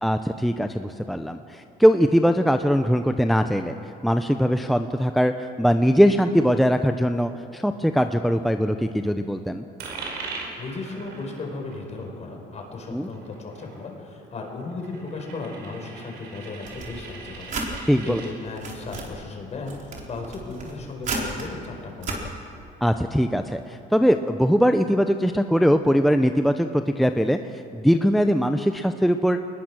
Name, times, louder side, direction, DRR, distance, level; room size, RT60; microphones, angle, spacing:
voice 1, 0.0-3.7 4.0-9.6 12.9-13.1 17.9-18.2 22.8-27.4 27.7-29.4, equal, ahead, 7 dB, 0.6 m, -21 dB
Coin (dropping), 9.8-18.3, right 4 dB, 85° right, 5.2 m, -41 dB
voice 2, 10.6-22.2, left 3 dB, 40° left, 2 dB, 5.0 m, -36 dB
sound 1, 16.7-17.7 18.3-19.1 19.6-21.5 22.0-22.2, right 3 dB, 50° right, 4.2 m, -33 dB
23.0 x 20.5 x 6.2 m, 2.7 s
cardioid pair, 110°, 17 cm